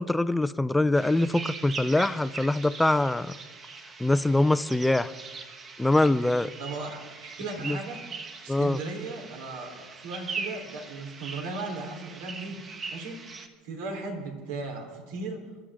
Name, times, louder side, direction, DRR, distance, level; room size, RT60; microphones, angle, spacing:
voice 1, 0.0-3.3 4.0-5.1 5.8-6.5 7.6-7.8 8.5-8.8, left 2 dB, 5° left, 14 dB, 0.4 m, -23 dB
sound 1, 1.0-13.5, right 4 dB, 25° right, 1.2 m, -41 dB
voice 2, 6.6-8.0 8.4-13.3 13.6-15.4, right 3 dB, 85° right, 3 dB, 3.8 m, -37 dB
29.5 x 12.5 x 3.8 m, 1.5 s
cardioid pair, 160°, 0 cm